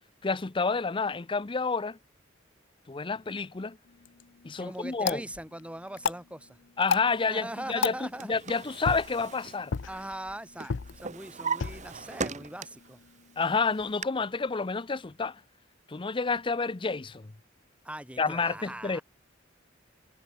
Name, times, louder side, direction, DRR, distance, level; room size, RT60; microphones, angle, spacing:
voice 1, 0.2-2.0 2.9-3.8 4.4-5.2 6.8-9.7 13.4-15.4 15.9-17.3 18.2-19.0, left 4 dB, 25° left, 0.6 m, -29 dB
sound 1, 3.9-13.9, left 6 dB, 65° left, 0.6 m, -37 dB
voice 2, 4.6-6.6 7.3-8.3 9.8-13.0 17.8-19.0, right 1 dB, 5° right, 2.6 m, -40 dB
Drawer open or close, 7.8-10.3 10.6-12.9 13.4-14.0, right 5 dB, 40° right, 1.1 m, -38 dB
head